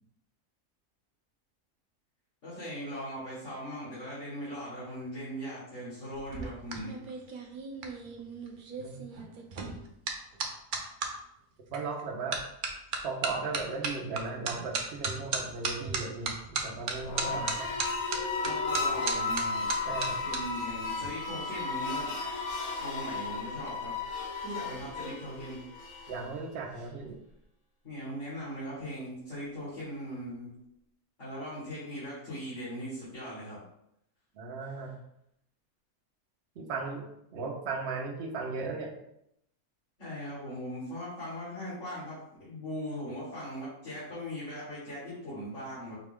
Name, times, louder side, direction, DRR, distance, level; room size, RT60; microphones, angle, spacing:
voice 1, 2.4-7.0 17.2-17.5 18.4-19.7 20.2-22.2 22.8-23.9 24.4-25.6 27.8-30.5 31.2-33.6 40.0-45.9, equal, 55° left, -12 dB, 2.1 m, -39 dB
sound 1, 6.1-11.1 11.7-12.0 12.3-20.4 20.7-21.1, right 4 dB, 85° right, 0.4 m, -35 dB
voice 2, 11.7-12.4 13.0-17.7 19.8-20.2 26.1-27.2 34.3-34.9 36.6-37.1 37.3-38.9, right 4 dB, 55° right, 0 dB, 0.8 m, -36 dB
sound 2, 17.0-26.4, left 3 dB, 85° left, 1.2 m, -34 dB
4.9 x 2.3 x 3.5 m, 0.79 s
omnidirectional pair, 1.6 m